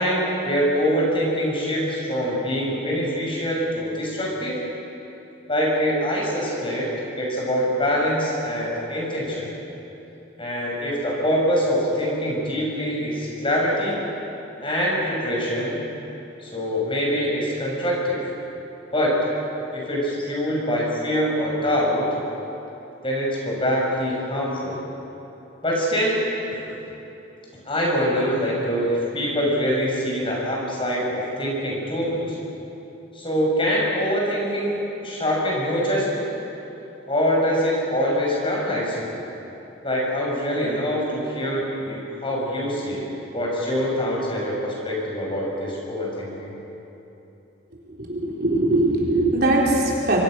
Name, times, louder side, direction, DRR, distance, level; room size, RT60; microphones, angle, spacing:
voice 1, 0.0-4.6 5.5-6.9 7.2-9.5 10.4-14.0 14.6-15.8 16.4-18.2 18.9-19.2 19.7-22.1 23.0-24.8 25.6-26.2 26.5-26.8 27.5-32.4 33.1-36.2 37.1-39.1 39.8-46.5, equal, 25° left, -3 dB, 6.1 m, -24 dB
voice 2, 48.0-50.2, right 2 dB, 50° right, -3 dB, 4.2 m, -21 dB
26.0 x 25.5 x 6.3 m, 3.0 s
head